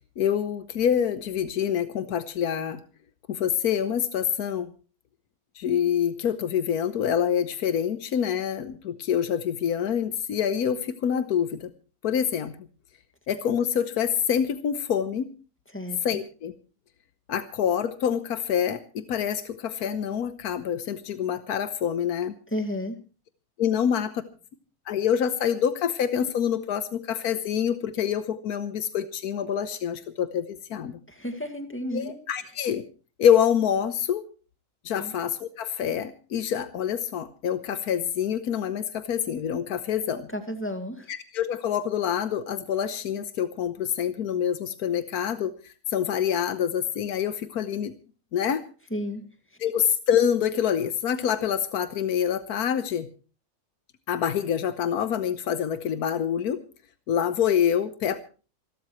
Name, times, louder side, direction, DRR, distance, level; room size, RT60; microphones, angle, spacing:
voice 1, 0.0-2.8 3.3-4.7 5.5-11.7 12.0-12.5 13.3-15.3 16.0-16.5 17.3-22.3 23.6-24.2 24.9-31.0 31.9-32.8 33.2-34.2 34.8-40.3 41.1-47.9 48.3-48.6 49.6-53.1 54.1-56.6 57.1-58.2, left 8 dB, 90° left, 11 dB, 1.5 m, -26 dB
voice 2, 22.5-23.0 31.1-32.2 35.0-35.1 40.3-41.1 48.9-49.2, equal, 10° left, 6 dB, 2.0 m, -32 dB
27.5 x 12.5 x 3.2 m, 0.36 s
omnidirectional pair, 1.6 m